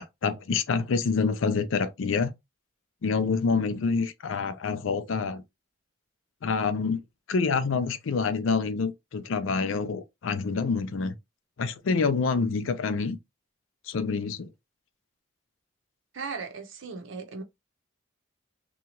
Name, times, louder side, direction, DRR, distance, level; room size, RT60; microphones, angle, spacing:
voice 1, 0.0-2.3 3.0-5.4 6.4-7.0 7.3-11.1 11.6-13.2 13.9-14.5, left 4 dB, 80° left, 0.4 m, -27 dB
voice 2, 16.1-17.4, right 4 dB, 75° right, 0.7 m, -37 dB
2.8 x 2.3 x 2.8 m
head